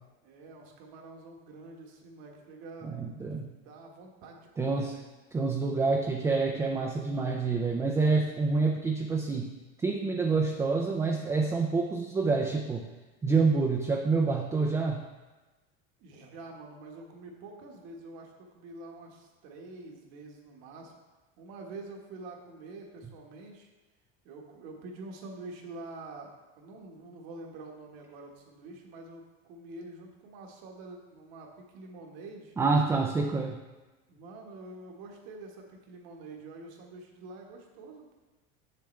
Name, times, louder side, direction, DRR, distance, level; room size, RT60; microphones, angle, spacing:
voice 1, 0.2-3.0 3.6-5.1 16.0-20.9 21.4-23.7 24.2-32.6 34.1-38.2, right 2 dB, 65° right, 1 dB, 1.4 m, -46 dB
voice 2, 2.8-3.5 4.6-5.0 5.3-9.5 9.8-12.9 13.2-15.0 32.6-33.6, right 4 dB, 10° right, 1 dB, 0.3 m, -27 dB
7.5 x 6.7 x 3.2 m, 1.2 s
cardioid pair, 145°, 29 cm